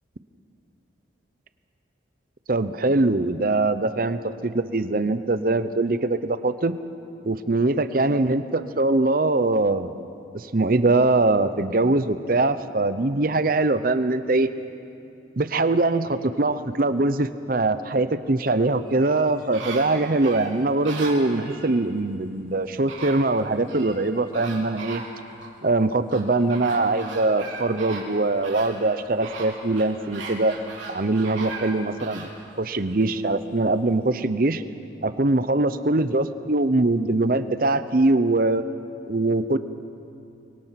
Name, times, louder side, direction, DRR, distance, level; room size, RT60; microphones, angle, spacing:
voice 1, 2.5-6.8 7.2-10.0 10.3-14.5 15.4-25.0 25.6-30.5 30.9-32.3 32.6-34.6 35.0-38.6 39.1-39.6, right 2 dB, 50° right, 12 dB, 0.8 m, -22 dB
sound 1, 18.9-21.7 22.5-22.6 22.9-24.0 24.3-25.5 26.1-32.3 32.8-32.9, right 3 dB, 85° right, 3.8 m, -38 dB
24.5 x 22.5 x 5.9 m, 2.6 s
head